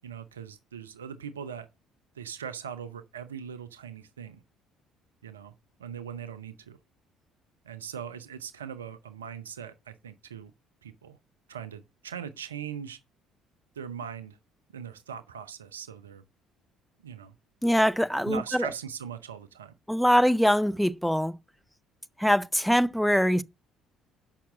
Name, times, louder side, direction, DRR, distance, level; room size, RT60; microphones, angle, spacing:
voice 1, 0.0-1.7 2.1-4.4 5.2-5.5 5.8-6.8 7.6-10.5 10.8-11.2 11.5-13.0 13.8-14.4 14.7-16.2 17.0-17.3 18.3-19.7, right 8 dB, 85° right, 0.5 m, -40 dB
voice 2, 17.6-18.7 19.9-21.3 22.2-23.4, equal, ahead, 0.6 m, -23 dB
7.3 x 5.8 x 6.2 m
figure-of-eight pair, 55°, 0 cm